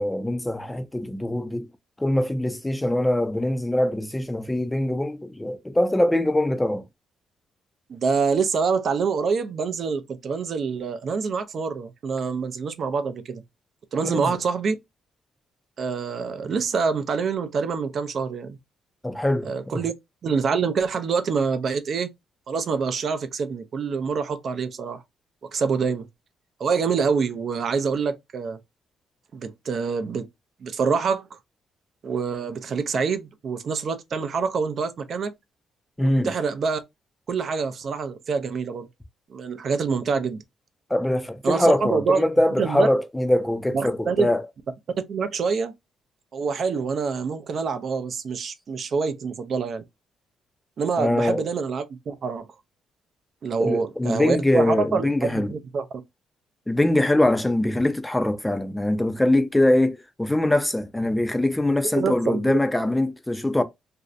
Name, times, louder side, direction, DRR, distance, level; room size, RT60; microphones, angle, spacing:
voice 1, 0.0-1.7 2.0-6.8 14.0-14.4 19.0-19.8 36.0-36.3 40.9-44.4 51.0-51.4 53.6-55.6 56.7-63.6, left 1 dB, 10° left, 0.4 m, -23 dB
voice 2, 7.9-13.4 13.9-14.8 15.8-18.6 19.4-19.9 20.2-22.1 22.5-25.0 25.5-26.1 26.6-28.6 29.3-30.3 30.6-31.4 32.0-35.3 36.0-36.8 37.3-38.9 39.3-40.4 41.4-42.3 42.6-42.9 43.7-44.3 45.1-45.7 46.3-49.8 50.8-52.4 53.4-55.8 61.9-62.6, right 5 dB, 55° right, 0.4 m, -26 dB
2.5 x 2.1 x 2.4 m
cardioid pair, 90°, 0 cm